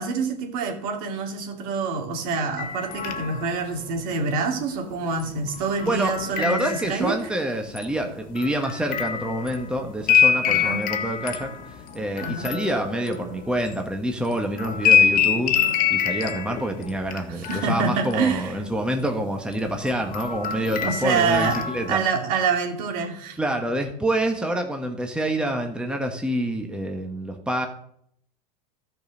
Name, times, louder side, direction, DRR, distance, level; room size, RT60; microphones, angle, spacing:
voice 1, 0.0-7.2 10.4-10.9 12.2-12.5 17.3-18.5 20.8-21.6 21.9-23.4, right 5 dB, 60° right, 2 dB, 2.6 m, -26 dB
sound 1, 2.6-3.6 5.2-7.3 7.8-14.0 14.3-17.2 17.4-18.4 18.7-19.0 19.5-22.0, left 8 dB, 40° left, 1.5 m, -25 dB
voice 2, 5.9-11.5 11.9-15.5 15.9-22.0 23.4-27.7, right 1 dB, 5° right, 3 dB, 1.4 m, -27 dB
13.0 x 5.5 x 6.4 m, 0.70 s
hypercardioid pair, 100°, 21 cm